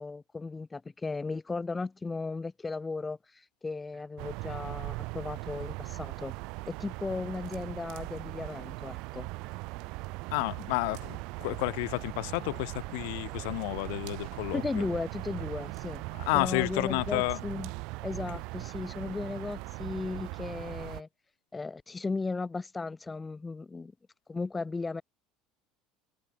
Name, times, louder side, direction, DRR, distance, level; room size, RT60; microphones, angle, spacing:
voice 1, 0.0-6.3 6.7-9.3 14.5-16.0 16.3-17.7 18.0-21.1 21.5-23.9 24.3-25.0, left 3 dB, 15° left, 0.4 m, -36 dB
sound 1, 3.9-19.9, right 11 dB, 40° right, 4.9 m, -63 dB
sound 2, 4.2-21.0, right 26 dB, 65° right, 0.7 m, -39 dB
voice 2, 10.3-14.8 16.1-17.4, left 31 dB, 85° left, 0.5 m, -31 dB
cardioid pair, 155°, 0 cm